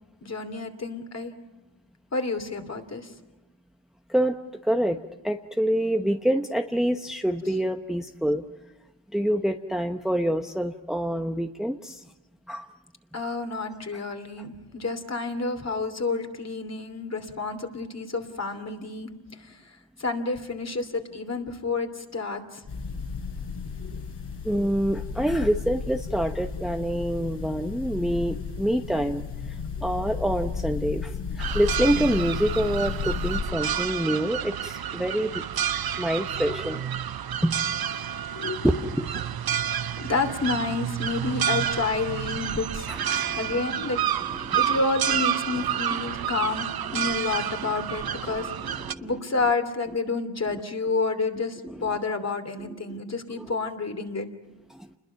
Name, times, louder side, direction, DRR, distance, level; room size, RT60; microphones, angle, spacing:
voice 1, 0.2-1.3 2.1-3.1 7.5-7.6 13.1-22.6 23.8-24.0 26.5-26.6 29.9-30.0 38.3-38.8 40.0-44.0 44.5-46.7 46.9-54.3, left 3 dB, 35° left, 7 dB, 2.9 m, -30 dB
voice 2, 4.6-8.4 9.1-12.0 12.5-12.7 24.4-29.6 29.8-35.4 36.0-36.9 37.4-37.6 38.6-39.0 42.9-43.4 44.4-44.8 45.9-46.0 47.6-47.7 48.2-48.4 48.8-49.1 51.6-51.9 52.6-53.0 54.7-54.9, equal, ahead, 5 dB, 0.9 m, -26 dB
sound 1, 22.7-33.4, left 5 dB, 65° left, 5.6 m, -33 dB
sound 2, 31.4-48.9, right 10 dB, 55° right, 0.8 m, -29 dB
29.0 x 21.5 x 5.9 m, 1.1 s
cardioid pair, 105°, 44 cm